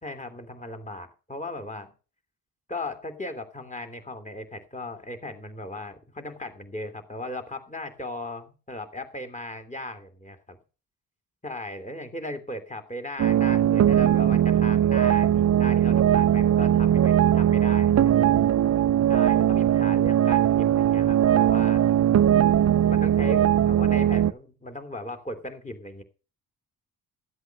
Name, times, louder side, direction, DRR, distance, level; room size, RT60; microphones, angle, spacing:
voice 1, 0.0-1.9 2.7-10.6 11.4-18.1 19.1-21.9 22.8-26.0, left 1 dB, 20° left, 7 dB, 2.9 m, -37 dB
sound 1, 13.2-24.3, right 10 dB, 40° right, 0.5 m, -20 dB
13.0 x 8.0 x 5.3 m, 0.34 s
supercardioid pair, 60°, 40 cm